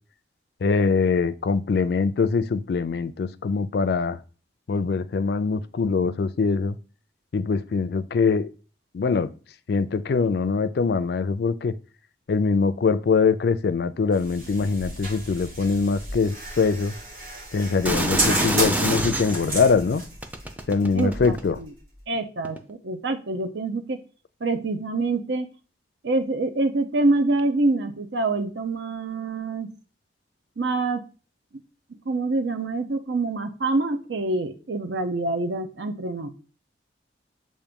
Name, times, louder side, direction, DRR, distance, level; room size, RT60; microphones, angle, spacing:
voice 1, 0.6-4.2 4.7-6.8 7.3-8.5 8.9-9.3 9.7-11.7 12.3-16.9 17.5-20.0 20.7-21.6, left 4 dB, 60° left, 15 dB, 0.4 m, -23 dB
sound 1, 14.1-22.0, right 1 dB, 50° right, 1.9 m, -32 dB
sound 2, 17.8-19.5 20.2-21.6 22.4-22.6, right 1 dB, 10° right, 0.5 m, -26 dB
voice 2, 20.9-21.7 22.1-24.0 24.4-25.5 26.0-29.7 30.6-31.0 32.1-36.3, right 2 dB, 75° right, 7 dB, 0.7 m, -26 dB
7.2 x 2.6 x 5.1 m, 0.36 s
head